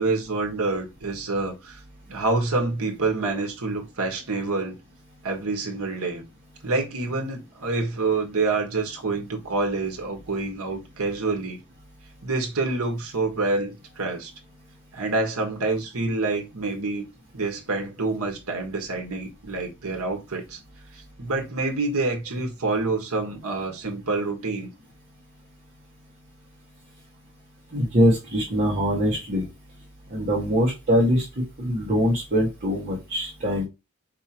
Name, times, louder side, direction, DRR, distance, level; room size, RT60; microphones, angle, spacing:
voice 1, 0.0-1.8 2.1-4.8 5.2-6.2 6.6-11.6 12.2-14.3 14.9-17.0 17.3-20.6 20.9-24.7, right 3 dB, 80° right, 1.4 m, -27 dB
voice 2, 27.7-29.4 30.1-33.6, equal, 40° right, 1.9 m, -23 dB
4.8 x 3.6 x 3.0 m
head